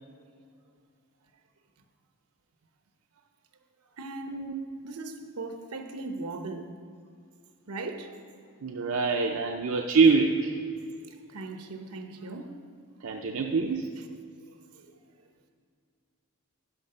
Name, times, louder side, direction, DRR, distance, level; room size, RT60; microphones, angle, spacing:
voice 1, 4.0-4.5 4.8-6.7 7.7-8.2 10.9-12.6 14.4-15.0, right 3 dB, 85° right, 0.9 m, -39 dB
voice 2, 8.6-10.5 13.0-14.0, right 4 dB, 65° right, 0.5 m, -25 dB
10.5 x 6.0 x 5.6 m
head